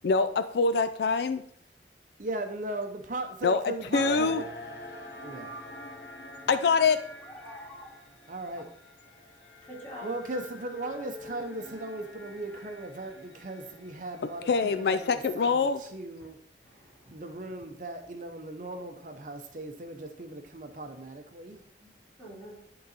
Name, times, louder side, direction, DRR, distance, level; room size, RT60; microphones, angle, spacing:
voice 1, 0.0-1.4 3.4-4.4 6.5-7.0 14.5-15.8, left 4 dB, 65° left, 11 dB, 0.4 m, -25 dB
voice 2, 2.2-4.5 5.2-5.5 8.3-8.7 10.0-16.4 17.1-21.6, right 2 dB, 45° right, 5 dB, 0.7 m, -38 dB
sound 1, 4.0-15.4, left 1 dB, 80° left, 1.3 m, -46 dB
voice 3, 7.2-7.9 8.3-8.4 9.6-10.2 16.2-16.3 16.6-17.3 21.8-21.9 22.2-22.6, equal, 10° left, -7 dB, 3.1 m, -46 dB
11.0 x 3.9 x 4.0 m, 0.66 s
head